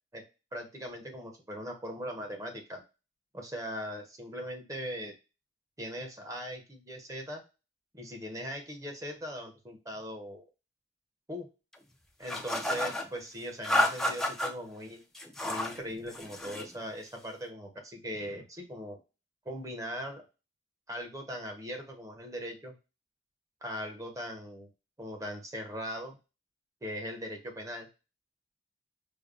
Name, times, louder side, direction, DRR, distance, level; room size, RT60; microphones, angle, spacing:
voice 1, 0.5-2.8 3.3-5.1 5.8-7.4 7.9-10.4 11.3-11.5 12.2-15.0 15.4-19.0 19.4-20.2 20.9-22.7 23.6-24.7 25.0-26.2 26.8-27.9, equal, 20° right, 2 dB, 0.9 m, -40 dB
sound 1, 12.3-13.1 13.6-14.5 15.1-15.8 16.1-16.7, left 1 dB, ahead, 0.4 m, -30 dB
5.1 x 2.2 x 2.5 m, 0.29 s
head